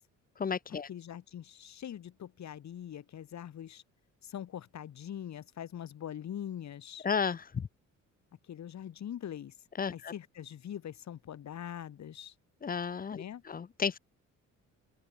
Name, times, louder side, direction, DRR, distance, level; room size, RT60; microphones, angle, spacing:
voice 1, 0.4-0.9 7.0-7.7 9.8-10.1 12.6-14.0, left 6 dB, 30° left, 0.7 m, -33 dB
voice 2, 0.9-3.8 4.2-7.1 8.5-9.5 9.9-12.3 13.1-13.4, left 10 dB, 65° left, 6.7 m, -43 dB
open air
cardioid pair, 90°, 30 cm